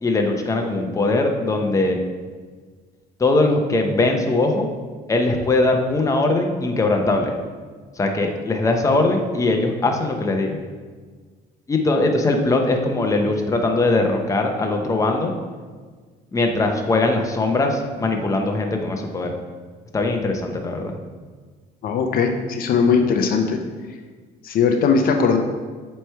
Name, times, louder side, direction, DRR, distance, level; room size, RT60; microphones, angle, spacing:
voice 1, 0.0-2.0 3.2-4.7 5.1-7.3 8.0-10.6 11.7-15.3 16.3-19.3 19.9-20.9, left 2 dB, 20° left, 3 dB, 0.7 m, -20 dB
voice 2, 21.8-23.6 24.4-25.4, left 5 dB, 60° left, 5 dB, 0.6 m, -19 dB
7.7 x 3.2 x 4.5 m, 1.5 s
cardioid pair, 110°, 17 cm